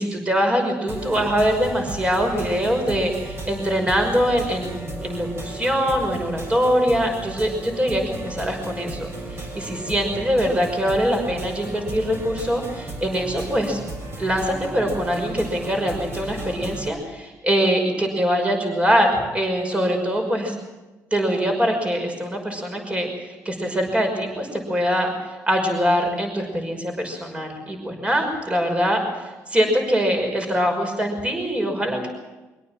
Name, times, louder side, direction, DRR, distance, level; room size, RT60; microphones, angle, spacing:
voice 1, 0.0-13.8 14.2-20.6 21.1-25.1 25.5-32.1, equal, 20° right, 3 dB, 5.7 m, -23 dB
sound 1, 0.9-16.9, right 2 dB, 40° right, 7.0 m, -35 dB
25.0 x 17.5 x 7.6 m, 1.1 s
cardioid pair, 105°, 6 cm